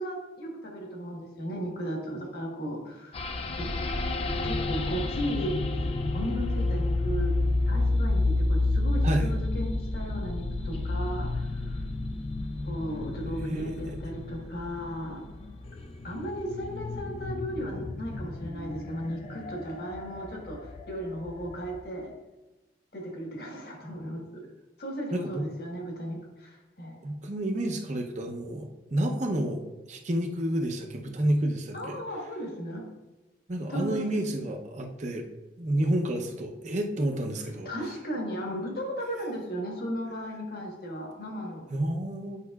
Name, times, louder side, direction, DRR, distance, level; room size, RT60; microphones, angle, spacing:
voice 1, 0.0-3.2 3.5-3.7 4.4-7.4 7.7-11.8 12.6-15.2 16.0-22.1 22.9-24.4 24.8-27.0 31.7-32.8 33.7-34.2 37.6-41.7, equal, 55° left, 0 dB, 1.4 m, -36 dB
sound 1, 3.1-21.8, left 2 dB, 30° left, 0.4 m, -30 dB
voice 2, 13.4-14.0 25.1-25.4 27.0-29.6 29.9-32.0 33.5-35.3 35.6-37.7 41.7-42.4, right 1 dB, 40° right, 2 dB, 0.7 m, -30 dB
8.3 x 5.5 x 2.4 m, 1.1 s
head